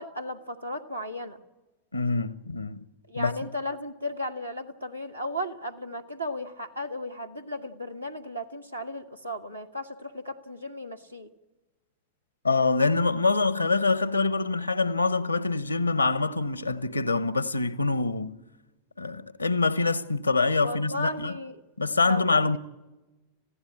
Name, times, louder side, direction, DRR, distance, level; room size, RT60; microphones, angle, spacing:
voice 1, 0.0-1.4 3.1-11.3 20.6-21.6 22.0-22.6, left 1 dB, 85° right, 1.5 m, -35 dB
voice 2, 1.9-2.8 3.2-3.3 12.4-18.4 19.0-21.3 21.8-22.6, left 3 dB, 80° left, 0.8 m, -25 dB
29.5 x 15.5 x 8.6 m
figure-of-eight pair, 90°, 0 cm